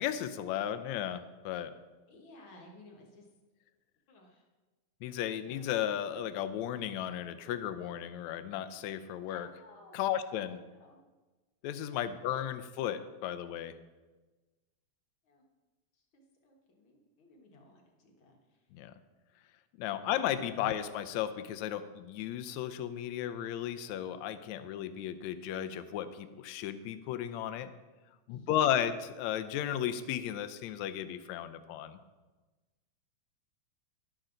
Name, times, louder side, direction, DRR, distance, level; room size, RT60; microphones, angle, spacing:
voice 1, 0.0-1.7 5.0-9.5 9.9-10.6 11.6-13.7 18.7-18.9 19.8-27.7 28.3-32.0, left 10 dB, 80° left, 11 dB, 1.9 m, -34 dB
voice 2, 2.1-3.3 4.1-4.5 5.4-5.8 9.3-10.0 10.4-11.0 11.9-12.1 15.3-15.4 16.1-18.6 19.9-20.0 20.6-20.8 28.3-28.6, left 2 dB, 50° left, 1 dB, 2.0 m, -56 dB
12.0 x 11.5 x 3.9 m, 1.2 s
omnidirectional pair, 3.4 m